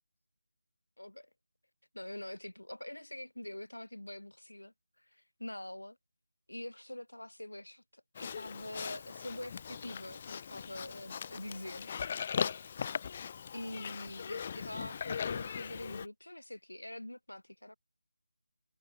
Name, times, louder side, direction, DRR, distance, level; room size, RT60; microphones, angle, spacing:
voice 1, 1.0-1.3 1.9-6.0 6.5-11.9 13.5-17.8, left 1 dB, 75° left, 3.5 m, -45 dB
Livestock farm animals working animals, 8.1-16.1, left 7 dB, 25° left, 2.2 m, -39 dB
figure-of-eight pair, 160°, 0 cm